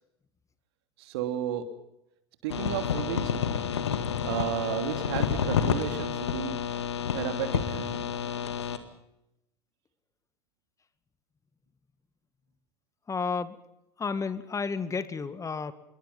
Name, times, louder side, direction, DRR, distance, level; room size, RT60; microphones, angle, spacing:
voice 1, 1.0-1.6 2.4-3.3 4.2-6.6 7.1-8.1, right 10 dB, 65° right, 7 dB, 3.0 m, -33 dB
sound 1, 2.5-8.8, left 7 dB, 80° left, 2.1 m, -29 dB
voice 2, 13.1-13.6 14.0-15.7, left 5 dB, 20° left, 12 dB, 2.1 m, -31 dB
27.5 x 22.0 x 5.6 m, 0.84 s
figure-of-eight pair, 75°, 14 cm